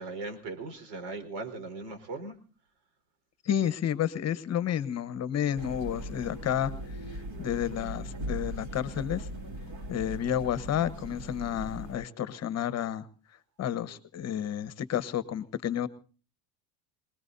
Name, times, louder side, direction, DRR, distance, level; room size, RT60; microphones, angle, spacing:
voice 1, 0.0-2.3, right 3 dB, 65° right, 7 dB, 4.6 m, -38 dB
voice 2, 3.4-6.7 7.4-9.3 9.9-13.1 13.6-15.9, left 10 dB, 35° left, 14 dB, 1.1 m, -30 dB
sound 1, 5.6-12.0, right 1 dB, 40° right, 3.6 m, -39 dB
26.5 x 20.0 x 2.7 m, 0.39 s
cardioid pair, 130°, 44 cm